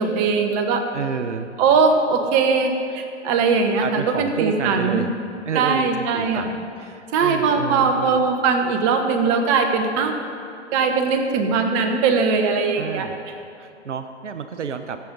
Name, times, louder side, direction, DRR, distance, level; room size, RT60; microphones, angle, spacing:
voice 1, 0.0-0.8 1.6-5.0 5.5-6.5 7.1-10.1 10.7-13.1, right 5 dB, 35° right, 5 dB, 1.1 m, -20 dB
voice 2, 0.9-1.5 2.9-3.0 3.8-5.1 5.5-8.2 12.7-13.2 13.6-15.0, right 6 dB, 90° right, 9 dB, 0.6 m, -30 dB
15.0 x 6.9 x 3.9 m, 2.6 s
hypercardioid pair, 120°, 35 cm